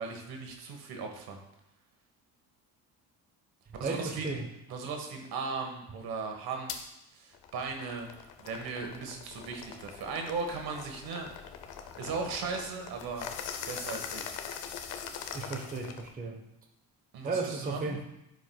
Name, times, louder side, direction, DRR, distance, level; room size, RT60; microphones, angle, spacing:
voice 1, 0.0-1.4 3.7-4.4 4.7-8.1 8.4-11.3 12.0-13.3 13.6-14.4 17.1-18.0, right 4 dB, 65° right, 3 dB, 1.4 m, -37 dB
voice 2, 3.8-4.5 15.3-16.4 17.2-18.0, right 3 dB, 20° right, 1 dB, 0.9 m, -34 dB
sound 1, 6.7-6.8 7.3-16.1, left 7 dB, 85° left, 0.8 m, -42 dB
11.0 x 4.9 x 2.3 m, 0.86 s
cardioid pair, 105°, 39 cm